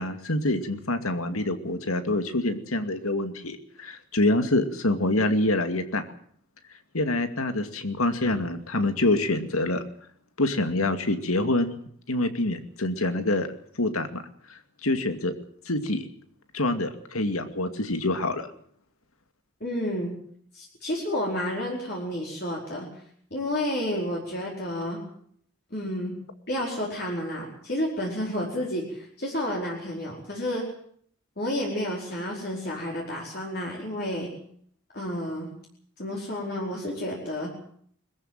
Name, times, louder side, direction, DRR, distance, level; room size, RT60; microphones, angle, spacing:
voice 1, 0.0-6.0 6.9-9.8 10.4-11.8 12.1-13.5 13.8-14.2 14.8-15.3 15.7-16.1 16.5-18.5, left 2 dB, 90° left, 8 dB, 2.4 m, -26 dB
voice 2, 19.6-20.1 20.5-22.9 23.3-25.0 25.7-26.1 26.5-30.6 31.4-34.3 34.9-35.5 36.0-37.5, left 1 dB, 45° left, -3 dB, 4.9 m, -30 dB
22.0 x 14.5 x 9.2 m, 0.63 s
head